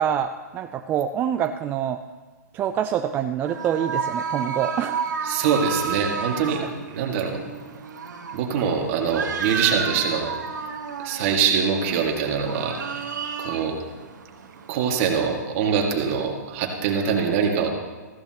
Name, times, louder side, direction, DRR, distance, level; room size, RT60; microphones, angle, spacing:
voice 1, 0.0-2.0 2.5-5.0, right 9 dB, 20° right, 8 dB, 0.3 m, -26 dB
sound 1, 3.5-15.1, right 6 dB, 75° right, 1.3 m, -32 dB
voice 2, 5.2-6.6 6.9-7.4 8.3-10.3 11.0-12.8 13.4-13.8 14.7-17.7, right 6 dB, 45° right, 2 dB, 2.0 m, -23 dB
15.0 x 14.5 x 3.0 m, 1.3 s
hypercardioid pair, 135°, 10 cm